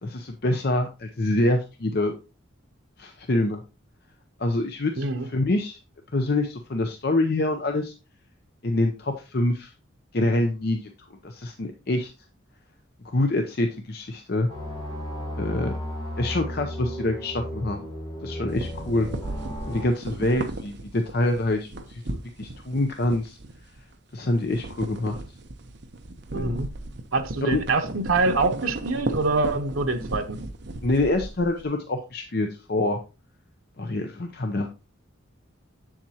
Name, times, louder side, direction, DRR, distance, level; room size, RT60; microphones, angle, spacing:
voice 1, 0.0-2.1 3.0-3.6 4.4-5.8 6.1-7.9 8.6-9.7 10.1-10.9 11.2-12.1 13.0-14.5 15.4-15.7 16.2-17.9 18.2-19.1 19.6-23.4 24.1-25.2 26.3-26.6 27.4-27.6 30.8-33.0 33.8-34.7, left 2 dB, 50° left, 0.7 m, -26 dB
voice 2, 5.0-5.3 26.3-26.7 27.1-30.4, right 3 dB, 90° right, 0.9 m, -25 dB
sound 1, 14.5-19.9, equal, 20° left, 4.2 m, -34 dB
sound 2, 18.5-23.9 24.2-31.7, right 2 dB, 55° right, 0.8 m, -36 dB
7.4 x 7.3 x 2.8 m
head